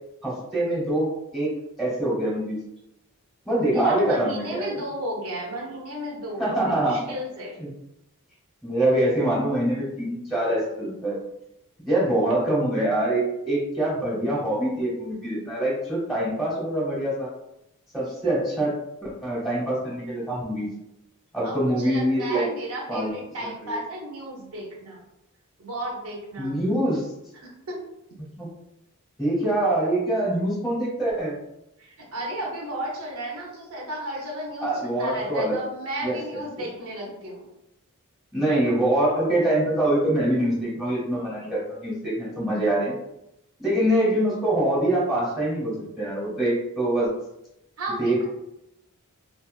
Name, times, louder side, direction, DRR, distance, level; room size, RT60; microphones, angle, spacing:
voice 1, 0.2-1.5 1.8-2.6 3.4-4.7 6.4-7.0 7.6-7.7 8.6-11.2 11.8-17.3 17.9-20.7 21.3-22.5 22.9-23.1 23.6-23.8 26.4-27.1 28.4-28.5 29.2-31.3 34.6-35.6 36.0-36.1 36.6-36.7 38.3-42.9 43.6-47.1 48.0-48.3, right 1 dB, ahead, -7 dB, 0.8 m, -24 dB
voice 2, 3.7-7.6 21.4-25.0 25.6-26.6 27.4-27.8 31.8-37.5 47.8-48.3, right 1 dB, 75° right, -2 dB, 0.7 m, -33 dB
2.3 x 2.3 x 2.3 m, 0.85 s
head